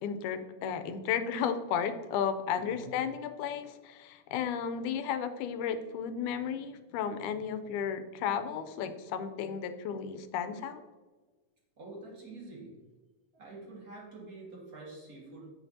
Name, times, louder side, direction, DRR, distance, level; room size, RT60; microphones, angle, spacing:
voice 1, 0.0-10.8, left 7 dB, 85° left, 10 dB, 2.1 m, -33 dB
voice 2, 2.6-3.0 11.8-12.8 13.3-15.5, right 2 dB, 35° right, -4 dB, 1.6 m, -47 dB
8.3 x 5.8 x 2.7 m, 1.3 s
omnidirectional pair, 3.5 m